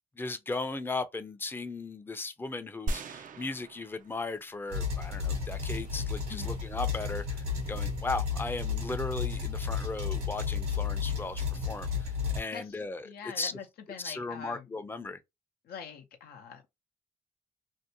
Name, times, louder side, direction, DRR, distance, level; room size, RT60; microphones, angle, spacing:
voice 1, 0.2-13.5 14.0-15.2, left 3 dB, 15° left, 0.5 m, -37 dB
sound 1, 2.9-4.6 5.1-5.2, right 2 dB, 55° right, 0.4 m, -38 dB
sound 2, 4.7-12.4, left 6 dB, 80° right, 1.1 m, -33 dB
voice 2, 6.3-6.7 12.5-12.8 13.0-14.7 15.6-16.7, left 7 dB, 80° left, 0.6 m, -44 dB
2.6 x 2.1 x 2.7 m
supercardioid pair, 50°, 16 cm